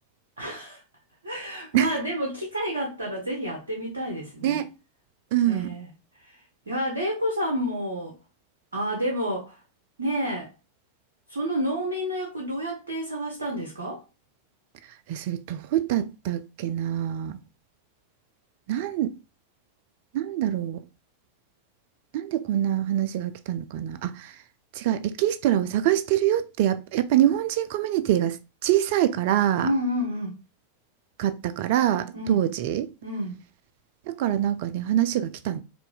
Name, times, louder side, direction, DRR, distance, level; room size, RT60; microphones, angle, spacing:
voice 1, 0.4-0.8 1.2-4.6 5.4-5.9 6.2-6.4 6.7-8.2 8.7-9.6 10.0-10.5 11.3-14.0 29.6-30.4 32.1-32.4 33.0-33.4, equal, 75° right, 0.8 m, -29 dB
voice 2, 5.3-5.7 15.1-17.4 18.7-19.1 20.1-20.8 22.1-24.3 24.8-28.4 28.6-29.7 31.2-32.9 34.1-35.6, right 12 dB, 50° right, 0.4 m, -25 dB
4.2 x 2.5 x 2.2 m
figure-of-eight pair, 90°, 0 cm